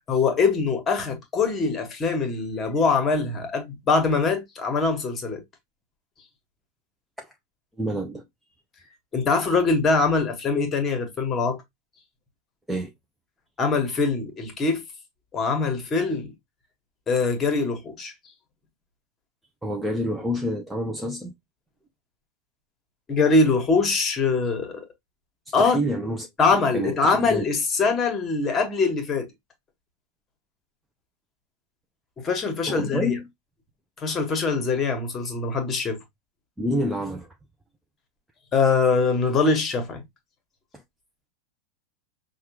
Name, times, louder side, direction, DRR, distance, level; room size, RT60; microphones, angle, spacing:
voice 1, 0.1-5.4 9.1-11.6 13.6-14.8 15.3-16.3 17.1-18.1 23.1-24.9 25.5-25.8 26.4-29.3 32.2-33.2 34.0-36.0 38.5-40.0, left 4 dB, 25° left, 1.5 m, -23 dB
voice 2, 7.8-8.2 12.7-12.9 19.6-21.3 25.5-27.5 32.7-33.3 36.6-37.4 40.7-40.8, equal, 5° right, 0.7 m, -28 dB
5.6 x 2.4 x 3.0 m
figure-of-eight pair, 90°, 0 cm